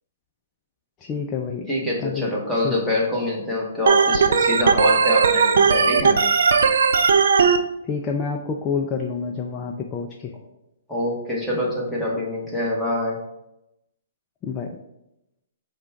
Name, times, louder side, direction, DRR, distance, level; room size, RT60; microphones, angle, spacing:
voice 1, 1.0-1.7 2.0-2.3 2.6-2.8 7.8-10.3 14.4-14.7, left 5 dB, 20° left, 2 dB, 0.4 m, -28 dB
voice 2, 1.7-6.2 10.9-13.2, left 1 dB, ahead, -6 dB, 1.2 m, -25 dB
Organ, 3.9-7.6, right 5 dB, 70° right, 0.4 m, -17 dB
4.9 x 2.4 x 4.4 m, 0.87 s
hypercardioid pair, 145°, 0 cm